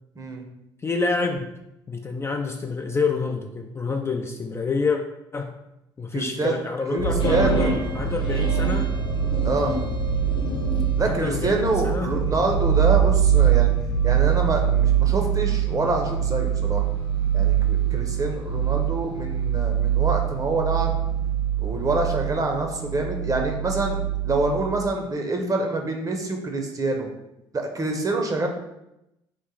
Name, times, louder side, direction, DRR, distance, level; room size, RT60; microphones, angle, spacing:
voice 1, 0.8-1.5 1.9-5.0 5.3-5.5 6.0-8.9 11.0-11.6 11.8-12.1, left 4 dB, 20° left, 3 dB, 0.3 m, -27 dB
voice 2, 6.1-6.5 6.9-7.8 9.4-9.8 11.0-13.7 14.0-16.9 17.3-21.0 21.6-27.1 27.5-28.5, right 2 dB, 25° right, 3 dB, 0.8 m, -26 dB
sound 1, 7.0-24.9, right 9 dB, 75° left, 0.8 m, -23 dB
sound 2, 7.2-10.9, left 1 dB, 40° left, 0.8 m, -30 dB
3.1 x 2.5 x 3.8 m, 0.86 s
figure-of-eight pair, 50°, 13 cm